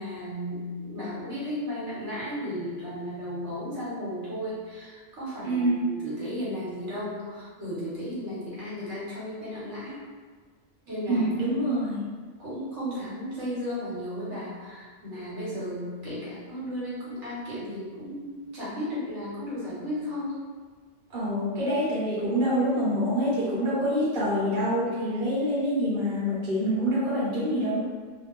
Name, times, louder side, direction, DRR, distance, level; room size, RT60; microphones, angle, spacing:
voice 1, 0.0-10.0 10.8-11.3 12.4-20.4, equal, 70° right, -9 dB, 1.3 m, -34 dB
voice 2, 5.4-5.8 11.1-12.0 21.1-27.8, equal, 50° right, -9 dB, 1.1 m, -26 dB
2.4 x 2.2 x 3.5 m, 1.5 s
omnidirectional pair, 1.3 m